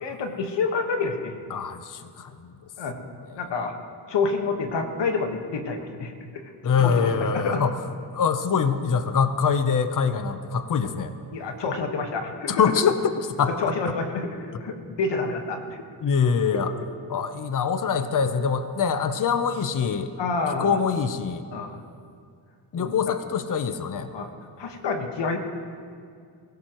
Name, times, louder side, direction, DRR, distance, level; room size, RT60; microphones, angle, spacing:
voice 1, 0.0-1.4 2.8-3.0 3.3-3.7 4.1-6.4 6.8-7.6 11.3-12.7 13.6-15.8 20.2-20.8 21.5-21.8 22.7-23.0 24.1-24.3 24.6-25.4, left 4 dB, 75° left, 4 dB, 1.6 m, -28 dB
voice 2, 1.5-2.5 6.6-7.7 8.1-11.1 12.5-13.1 13.4-13.7 16.0-16.7 17.1-20.1 20.6-21.4 22.7-24.1, left 6 dB, 45° left, 10 dB, 0.9 m, -24 dB
23.5 x 16.0 x 3.1 m, 2.2 s
cardioid pair, 90°, 42 cm